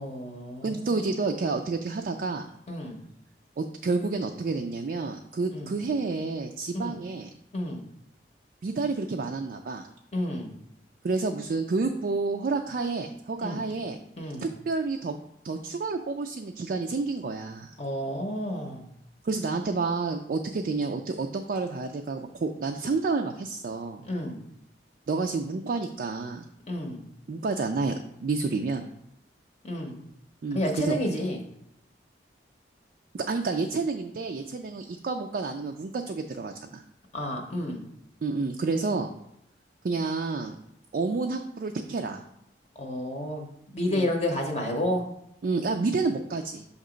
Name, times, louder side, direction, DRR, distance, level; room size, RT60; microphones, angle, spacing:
voice 1, 0.0-1.1 2.7-3.0 5.5-5.7 6.7-7.0 7.5-7.8 10.1-10.5 13.4-13.6 14.2-14.5 17.8-18.9 24.0-24.4 26.7-27.0 29.6-30.0 30.5-31.4 37.1-37.8 42.8-45.1, left 1 dB, 35° left, 2 dB, 0.7 m, -30 dB
voice 2, 0.6-2.5 3.6-7.3 8.6-9.9 11.0-14.0 14.4-15.1 15.4-17.7 19.2-24.0 25.1-26.4 27.3-27.9 28.2-28.8 30.4-31.2 33.1-36.8 38.2-39.1 39.8-40.6 40.9-42.2 43.9-44.1 45.4-46.6, right 3 dB, 50° right, 4 dB, 0.4 m, -29 dB
6.5 x 2.9 x 5.0 m, 0.79 s
head